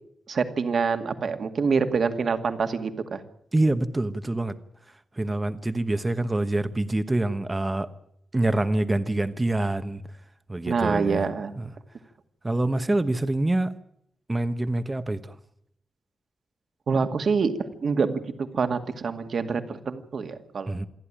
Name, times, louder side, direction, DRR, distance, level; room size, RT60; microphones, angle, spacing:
voice 1, 0.3-3.2 10.7-11.5 16.9-20.8, right 5 dB, 55° right, 2.2 m, -26 dB
voice 2, 3.5-4.6 5.1-7.9 8.3-10.0 10.5-11.3 11.6-11.7 12.4-13.7 14.3-15.4 20.7-20.9, right 2 dB, 15° right, 1.2 m, -26 dB
27.5 x 11.0 x 10.0 m
wide cardioid pair, 125°, 0 cm